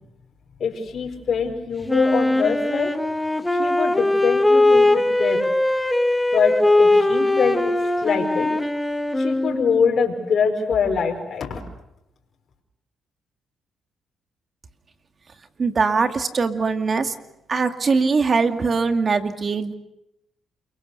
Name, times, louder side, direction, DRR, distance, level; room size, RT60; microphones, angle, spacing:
voice 1, 0.6-2.9 3.5-5.4 6.3-8.5 9.2-11.6, left 6 dB, 55° left, 0 dB, 4.7 m, -24 dB
Wind instrument woodwind instrument, 1.9-9.9, left 2 dB, 10° left, 1.7 m, -20 dB
voice 2, 15.6-17.1 17.5-19.7, right 4 dB, 40° right, 7 dB, 2.3 m, -21 dB
29.0 x 23.0 x 6.9 m, 0.86 s
cardioid pair, 80°, 0 cm